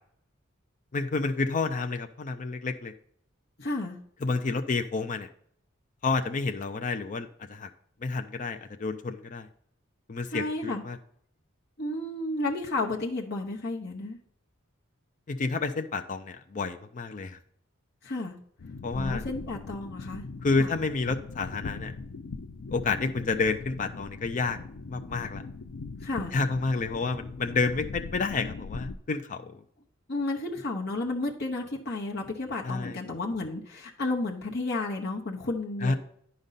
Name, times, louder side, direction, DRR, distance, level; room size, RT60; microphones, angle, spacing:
voice 1, 0.9-2.9 4.2-5.3 6.0-7.7 8.0-9.5 10.1-11.0 15.3-17.4 18.8-19.2 20.4-21.9 22.7-24.6 24.9-25.4 26.3-29.6 32.6-33.0 35.8-35.9, left 4 dB, 40° left, 7 dB, 0.5 m, -29 dB
voice 2, 3.6-4.0 10.3-10.8 11.8-14.2 18.0-18.3 18.9-20.2 20.6-20.7 26.0-26.4 30.1-35.9, left 2 dB, 55° left, -1 dB, 1.0 m, -32 dB
sound 1, 18.6-29.0, left 3 dB, 85° left, 0.5 m, -40 dB
10.0 x 5.2 x 4.0 m, 0.67 s
head